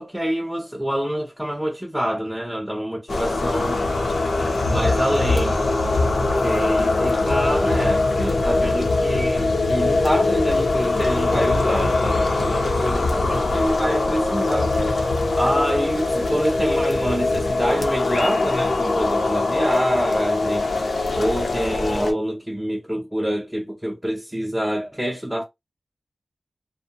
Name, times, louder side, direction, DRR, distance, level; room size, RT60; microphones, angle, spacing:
voice 1, 0.0-3.8 4.6-5.6 6.2-14.8 15.4-20.7 21.1-25.4, equal, 5° right, 0.5 m, -26 dB
sound 1, 3.1-22.1, left 2 dB, 85° left, 0.7 m, -22 dB
2.6 x 2.1 x 2.7 m
wide cardioid pair, 95°, 0 cm